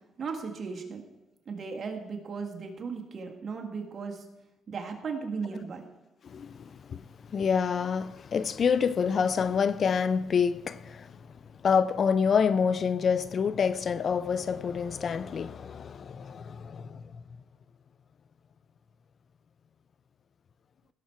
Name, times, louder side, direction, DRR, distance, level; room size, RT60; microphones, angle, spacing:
voice 1, 0.2-1.0 1.5-4.2 4.7-5.8, right 5 dB, 50° right, 1.7 m, -36 dB
voice 2, 6.2-7.0 7.3-11.1 11.6-17.0, left 6 dB, 50° left, 0.4 m, -27 dB
17.0 x 6.0 x 4.4 m
cardioid pair, 90°, 0 cm